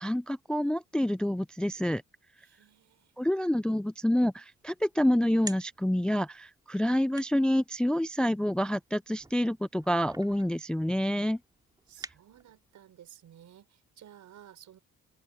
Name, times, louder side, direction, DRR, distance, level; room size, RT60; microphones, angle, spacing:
voice 1, 0.0-2.0 3.2-11.4, equal, 5° left, 0.4 m, -27 dB
voice 2, 2.4-3.1 11.9-14.8, right 11 dB, 70° right, 5.8 m, -54 dB
sound 1, 4.5-12.8, right 2 dB, 15° right, 2.7 m, -50 dB
open air
cardioid pair, 90°, 30 cm